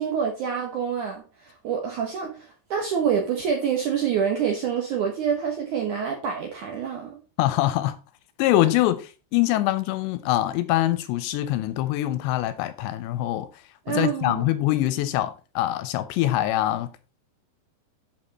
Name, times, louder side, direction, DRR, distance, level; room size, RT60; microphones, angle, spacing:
voice 1, 0.0-7.2 13.9-14.5, right 7 dB, 75° right, 1.8 m, -27 dB
voice 2, 7.4-8.0 8.4-13.5 13.9-16.9, left 14 dB, 85° left, 2.8 m, -24 dB
8.2 x 6.6 x 4.1 m
omnidirectional pair, 5.2 m